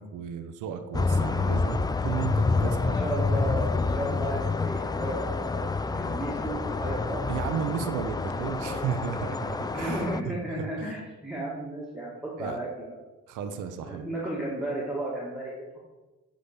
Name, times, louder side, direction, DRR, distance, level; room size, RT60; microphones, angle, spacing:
voice 1, 0.0-3.0 3.3-3.5 7.3-10.9 12.4-12.6 13.3-14.1, right 7 dB, 85° right, 8 dB, 0.9 m, -34 dB
sound 1, 0.9-10.2, left 4 dB, 15° left, 0.3 m, -28 dB
voice 2, 2.5-7.3 8.6-8.9 9.7-13.0 13.8-15.8, right 1 dB, ahead, -7 dB, 2.0 m, -34 dB
8.6 x 3.9 x 6.7 m, 1.2 s
cardioid pair, 90°, 30 cm